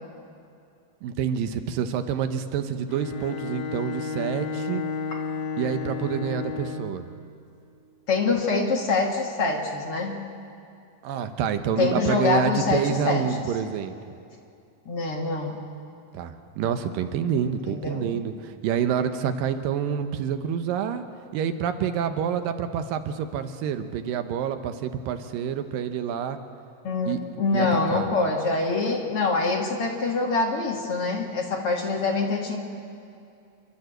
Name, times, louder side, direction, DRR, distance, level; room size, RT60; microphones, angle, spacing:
voice 1, 1.0-4.8 5.6-7.0 11.0-14.0 16.1-21.0 21.3-26.4 27.1-27.2 27.5-28.1, right 8 dB, 85° right, 9 dB, 2.6 m, -27 dB
Bowed string instrument, 2.9-7.1, left 5 dB, 90° left, 4.1 m, -32 dB
voice 2, 8.1-10.2 11.8-13.2 14.9-15.6 17.7-18.1 26.8-32.6, left 3 dB, 45° left, 0 dB, 2.4 m, -25 dB
27.5 x 12.0 x 7.9 m, 2.5 s
omnidirectional pair, 3.9 m